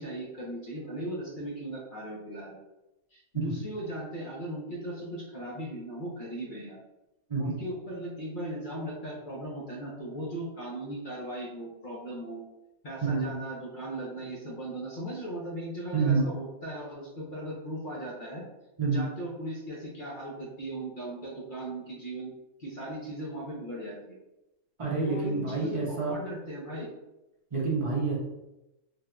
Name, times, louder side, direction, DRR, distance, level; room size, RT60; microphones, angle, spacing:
voice 1, 0.0-2.6 3.1-6.8 7.4-12.4 12.8-18.4 18.8-22.3 22.6-24.1 25.1-26.9, right 1 dB, 45° left, -5 dB, 0.7 m, -38 dB
voice 2, 15.9-16.3 18.8-19.1 24.8-26.2 27.5-28.2, right 4 dB, 40° right, -4 dB, 0.5 m, -28 dB
3.5 x 2.6 x 2.3 m, 0.94 s
omnidirectional pair, 1.5 m